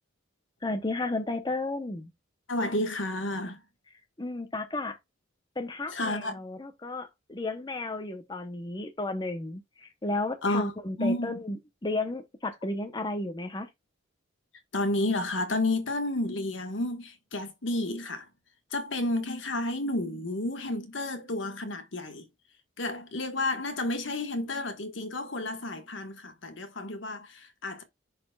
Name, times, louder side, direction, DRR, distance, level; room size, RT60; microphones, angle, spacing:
voice 1, 0.6-2.1 4.2-5.0 5.6-11.6 11.8-13.7, left 2 dB, 20° left, 0.8 m, -33 dB
voice 2, 2.5-3.6 5.9-6.4 10.4-10.7 11.0-11.4 14.7-18.3 18.7-22.3 22.8-27.8, left 2 dB, 70° left, 1.5 m, -31 dB
10.5 x 4.2 x 2.3 m
head